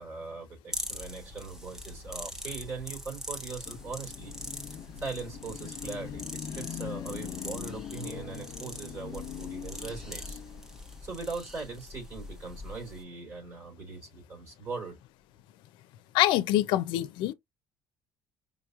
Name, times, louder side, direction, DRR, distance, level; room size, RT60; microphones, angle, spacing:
voice 1, 0.0-4.3 4.7-10.4 11.0-15.0, right 4 dB, 35° right, 3.4 m, -40 dB
sound 1, 0.7-13.0, left 1 dB, 5° right, 0.9 m, -42 dB
Car passing by / Traffic noise roadway noise / Engine, 3.6-11.0, left 9 dB, 65° left, 1.0 m, -42 dB
voice 2, 16.1-17.3, left 15 dB, 85° left, 0.5 m, -25 dB
5.1 x 3.0 x 2.4 m
cardioid pair, 140°, 8 cm